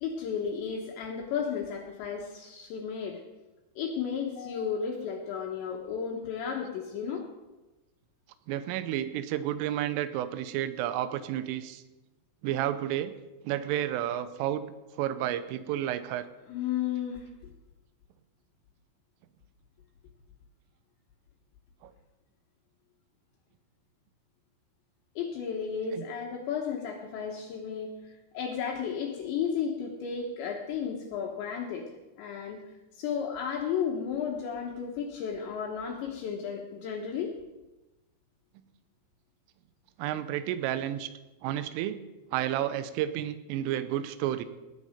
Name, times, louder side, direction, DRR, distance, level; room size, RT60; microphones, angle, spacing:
voice 1, 0.0-3.2 3.8-7.3 16.5-17.5 25.2-31.9 32.2-32.6 32.9-37.3, left 7 dB, 70° left, 1 dB, 3.0 m, -33 dB
voice 2, 8.5-11.8 12.4-13.1 13.4-14.7 15.0-16.3 21.8-21.9 25.9-26.1 40.0-41.1 41.4-42.0 42.3-44.5, right 12 dB, 80° right, 13 dB, 3.2 m, -31 dB
18.5 x 8.5 x 5.0 m, 1.1 s
omnidirectional pair, 5.9 m